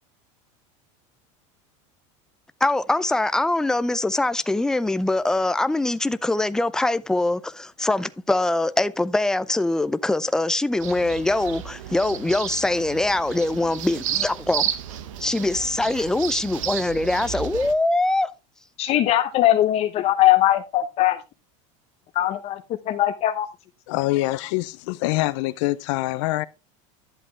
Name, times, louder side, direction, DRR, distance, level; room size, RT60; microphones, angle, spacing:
voice 1, 2.6-14.7 15.2-18.3, left 2 dB, 5° left, 0.5 m, -23 dB
sound 1, 10.8-17.7, right 10 dB, 85° right, 1.3 m, -32 dB
voice 2, 18.8-21.2 22.1-22.6 22.9-23.5, left 13 dB, 40° left, 0.8 m, -20 dB
voice 3, 23.9-26.5, left 18 dB, 65° left, 0.6 m, -25 dB
11.0 x 7.7 x 3.2 m
supercardioid pair, 135°, 16 cm